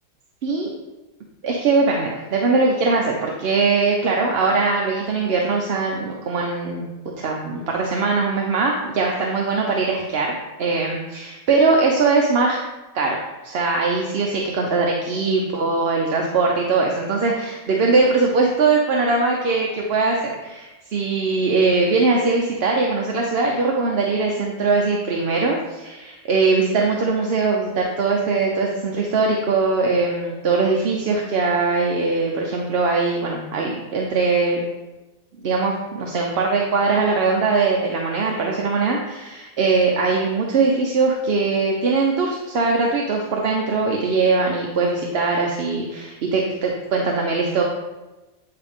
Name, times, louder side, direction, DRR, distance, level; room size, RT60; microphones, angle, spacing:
voice 1, 1.4-6.9 7.2-12.6 12.9-13.2 13.4-34.6 35.4-47.6, right 4 dB, 55° right, 0 dB, 0.9 m, -21 dB
9.4 x 4.8 x 3.6 m, 1.1 s
omnidirectional pair, 1.4 m